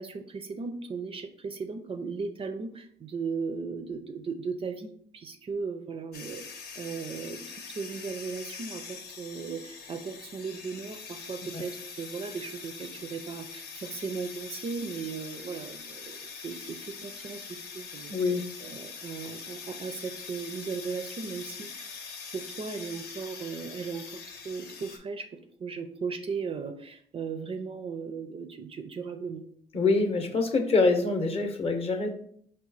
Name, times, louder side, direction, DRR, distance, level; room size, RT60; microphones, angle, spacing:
voice 1, 0.0-7.4 7.7-18.3 18.6-21.9 22.3-25.3 25.6-29.4, right 5 dB, 35° right, 8 dB, 0.4 m, -37 dB
sound 1, 6.1-25.0, left 5 dB, 70° left, 0.8 m, -43 dB
voice 2, 18.1-18.4 29.7-32.1, left 3 dB, 35° left, 5 dB, 0.7 m, -25 dB
4.7 x 2.2 x 4.0 m, 0.64 s
cardioid pair, 110°, 17 cm